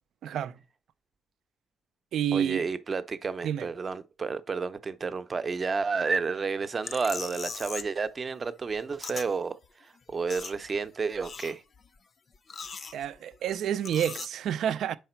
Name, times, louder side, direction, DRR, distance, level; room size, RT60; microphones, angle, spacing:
voice 1, 0.2-0.6 2.1-2.7 3.4-3.7 12.9-15.0, right 9 dB, 75° right, 0.4 m, -29 dB
voice 2, 2.3-11.6, right 4 dB, 35° right, 0.7 m, -31 dB
sound 1, 6.8-8.0 8.3-9.3 9.6-9.7 10.0-10.9 11.1-11.9 12.3-13.4 13.8-14.3, left 5 dB, 45° left, 0.5 m, -40 dB
5.8 x 4.8 x 4.4 m
cardioid pair, 90°, 0 cm